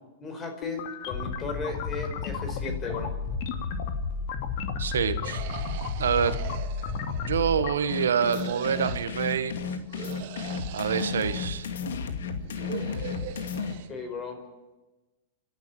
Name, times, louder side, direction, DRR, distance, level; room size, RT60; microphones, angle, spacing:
voice 1, 0.2-3.1 13.9-14.4, left 3 dB, 25° left, 6 dB, 4.9 m, -36 dB
sound 1, 0.6-7.7, left 5 dB, 55° left, 2.5 m, -32 dB
voice 2, 4.8-5.5 6.0-6.4 7.2-9.6 10.7-11.7, right 7 dB, 85° right, 12 dB, 1.4 m, -26 dB
sound 2, 5.2-7.5 8.2-9.1 9.9-11.5 12.3-13.9, right 11 dB, 55° right, 2.2 m, -41 dB
sound 3, 7.9-13.7, left 6 dB, 80° left, 2.3 m, -33 dB
27.5 x 12.0 x 9.1 m, 1.1 s
hypercardioid pair, 120°, 0 cm